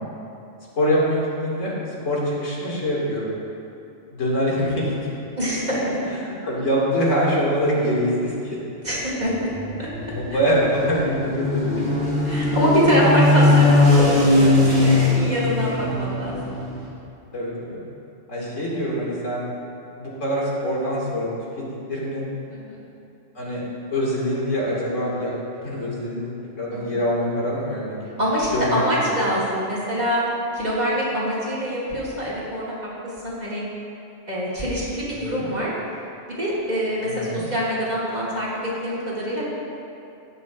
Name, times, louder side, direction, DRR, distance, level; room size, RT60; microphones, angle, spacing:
voice 1, 0.8-1.7 2.0-3.3 4.1-4.9 6.2-8.6 10.2-11.9 12.4-12.5 12.8-13.5 15.6-15.9 17.3-17.8 18.3-19.5 19.9-21.3 21.6-22.2 23.4-23.6 23.9-25.3 25.6-28.1 28.5-29.1 35.1-35.5 37.0-37.4, equal, 75° left, -5 dB, 2.3 m, -24 dB
voice 2, 5.4-6.0 8.8-9.5 9.8-9.9 12.2-16.4 18.4-18.7 22.5-22.8 26.7-26.9 28.2-30.2 30.5-32.7 33.2-33.6 34.3-35.7 36.4-39.4, equal, 35° right, -8 dB, 2.1 m, -24 dB
sound 1, 9.2-16.9, left 2 dB, 50° right, 2.6 m, -20 dB
18.0 x 6.7 x 2.4 m, 2.7 s
omnidirectional pair, 1.3 m